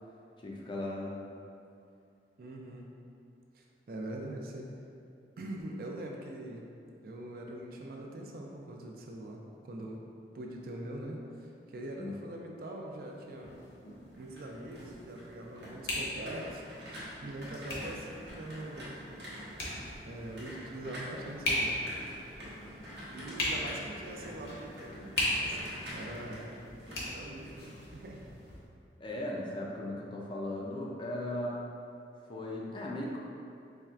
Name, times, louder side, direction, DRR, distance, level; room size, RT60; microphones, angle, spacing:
voice 1, 0.4-1.2 12.0-12.1 29.0-31.6 32.3-33.2, left 1 dB, 25° left, -3 dB, 0.4 m, -37 dB
voice 2, 2.4-2.9 3.5-4.7 5.4-6.7 7.0-10.0 10.3-13.5 14.2-16.6 17.2-18.9 19.7-21.8 23.1-26.5 27.1-28.3, right 1 dB, 55° right, 0 dB, 0.4 m, -43 dB
sound 1, 13.4-28.6, left 1 dB, 60° left, 0.8 m, -39 dB
sound 2, 14.0-28.0 28.3-28.7, equal, 70° right, 0.8 m, -47 dB
4.4 x 3.2 x 2.4 m, 2.6 s
head